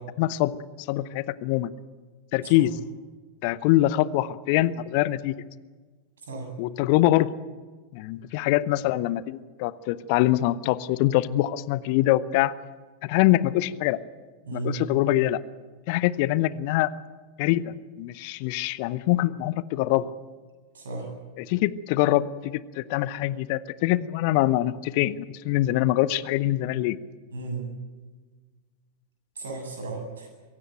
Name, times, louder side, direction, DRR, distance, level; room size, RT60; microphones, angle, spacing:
voice 1, 0.2-1.7 2.3-2.8 3.4-5.3 6.6-7.3 7.9-12.5 13.0-14.0 14.5-15.4 15.9-16.9 17.4-20.1 21.4-27.0, left 15 dB, 45° left, 18 dB, 0.7 m, -24 dB
voice 2, 20.7-21.0 27.3-27.6 29.4-30.3, right 3 dB, 65° right, 2 dB, 7.9 m, -34 dB
23.5 x 16.5 x 9.2 m, 1.4 s
figure-of-eight pair, 90°, 0 cm